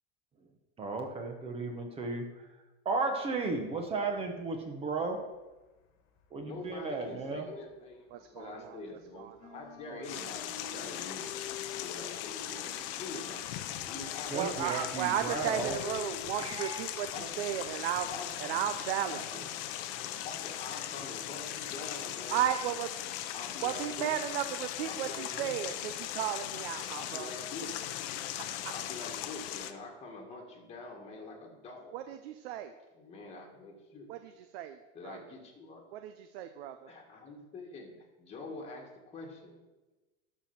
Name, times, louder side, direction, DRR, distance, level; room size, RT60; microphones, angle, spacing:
voice 1, 0.8-2.5 2.8-5.2 6.3-7.5 14.3-15.8 16.4-16.9, right 3 dB, 20° right, 4 dB, 0.8 m, -34 dB
sound 1, 3.6-4.5 4.8-7.8 8.1-16.3, left 7 dB, 40° left, 1.5 m, -49 dB
voice 2, 6.4-11.3 11.8-13.5 13.8-14.4 16.9-17.4 18.0-18.4 19.0-19.4 20.0-22.5 23.3-24.1 24.8-25.5 26.9-27.8 28.7-32.0 32.9-34.1 34.9-35.8 36.9-39.6, left 3 dB, 20° left, 0 dB, 1.6 m, -45 dB
voice 3, 8.1-8.8 9.2-9.6 9.9-10.0 14.3-18.1 18.4-19.2 22.3-22.9 23.6-25.7 26.2-27.3 28.4-28.7 31.9-32.7 34.1-34.8 35.0-35.2 35.9-36.9, right 11 dB, 70° right, 8 dB, 0.7 m, -34 dB
sound 2, 10.0-29.7, left 12 dB, 60° left, 0.7 m, -39 dB
12.5 x 4.5 x 5.9 m, 1.1 s
supercardioid pair, 170°, 32 cm